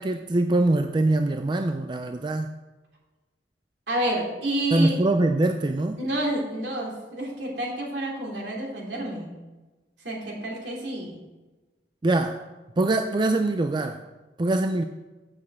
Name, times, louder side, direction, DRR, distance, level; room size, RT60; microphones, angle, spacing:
voice 1, 0.0-2.5 4.7-6.0 12.0-12.5 12.8-14.0 14.4-14.8, right 2 dB, 25° right, 7 dB, 0.4 m, -23 dB
voice 2, 3.9-5.0 6.0-9.3 10.0-11.2, right 1 dB, 70° right, -2 dB, 2.8 m, -29 dB
7.6 x 6.1 x 7.4 m, 1.2 s
head